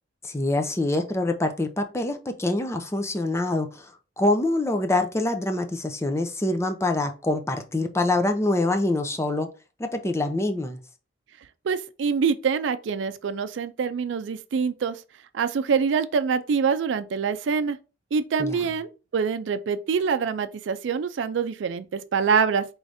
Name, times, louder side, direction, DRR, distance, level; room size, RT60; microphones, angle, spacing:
voice 1, 0.2-3.9 4.2-9.5 9.8-10.8 18.4-18.6, left 2 dB, 15° left, 0.5 m, -25 dB
voice 2, 11.6-15.0 15.3-17.8 18.1-22.7, right 6 dB, 90° right, 0.4 m, -25 dB
4.9 x 3.1 x 2.6 m
head